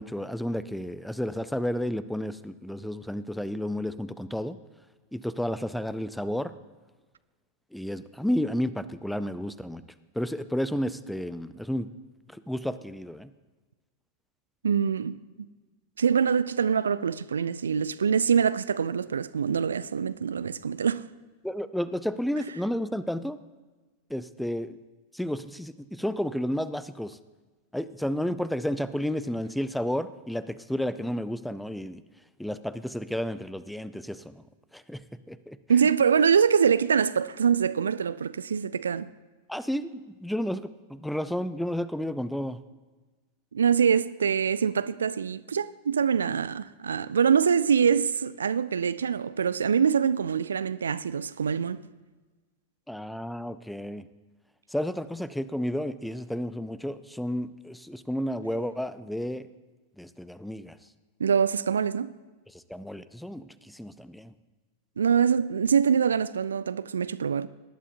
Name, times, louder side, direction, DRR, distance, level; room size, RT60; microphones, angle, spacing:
voice 1, 0.0-4.6 5.1-6.5 7.7-9.8 10.1-11.9 12.3-13.3 21.4-23.4 24.1-24.8 25.1-27.2 27.7-32.0 32.4-34.4 34.7-35.6 39.5-42.6 52.9-54.1 54.7-59.5 60.0-60.8 62.5-64.3, equal, ahead, 0.5 m, -32 dB
voice 2, 14.6-15.2 16.0-21.0 35.7-39.1 43.5-51.8 61.2-62.1 65.0-67.5, right 7 dB, 70° right, 0.3 m, -24 dB
19.0 x 11.0 x 2.6 m
figure-of-eight pair, 90°, 0 cm